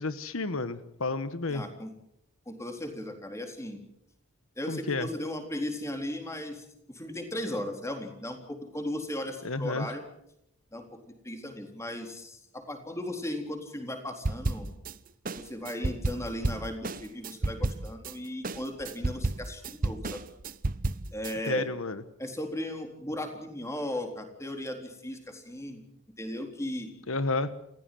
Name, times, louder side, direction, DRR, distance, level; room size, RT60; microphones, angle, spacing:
voice 1, 0.0-1.6 4.7-5.1 9.4-9.9 21.5-22.0 27.1-27.5, left 3 dB, 75° left, 12 dB, 1.2 m, -31 dB
voice 2, 1.5-1.9 2.5-3.8 4.6-10.0 10.7-14.7 15.4-20.2 21.1-21.7 22.2-25.8 26.2-26.9, left 1 dB, 15° left, 4 dB, 3.8 m, -36 dB
sound 1, 14.2-14.9 15.2-18.1 18.4-21.3, right 2 dB, 40° right, 0.9 m, -31 dB
29.0 x 15.5 x 7.7 m, 0.77 s
head